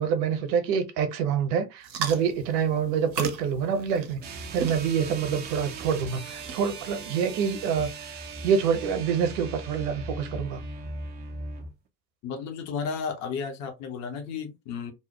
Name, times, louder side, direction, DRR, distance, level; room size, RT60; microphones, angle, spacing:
voice 1, 0.0-4.2 4.5-7.9 8.4-10.6, right 7 dB, 50° right, 0.8 m, -26 dB
sound 1, 1.8-8.1, right 5 dB, 85° right, 0.6 m, -39 dB
sound 2, 4.2-11.7, right 3 dB, 25° right, 0.4 m, -39 dB
voice 2, 12.2-14.9, left 6 dB, 35° left, 0.7 m, -33 dB
2.7 x 2.0 x 2.8 m
figure-of-eight pair, 60°, 50 cm